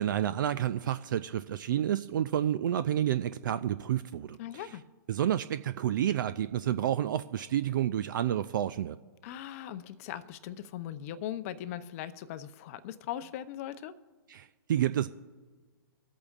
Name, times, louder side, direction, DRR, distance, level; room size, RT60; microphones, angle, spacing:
voice 1, 0.0-4.7 5.1-9.0 14.3-15.1, right 11 dB, 55° right, 13 dB, 0.4 m, -30 dB
voice 2, 4.4-4.8 9.2-13.9, left 11 dB, 35° left, 12 dB, 0.6 m, -39 dB
24.5 x 8.4 x 2.4 m, 1.4 s
hypercardioid pair, 130°, 13 cm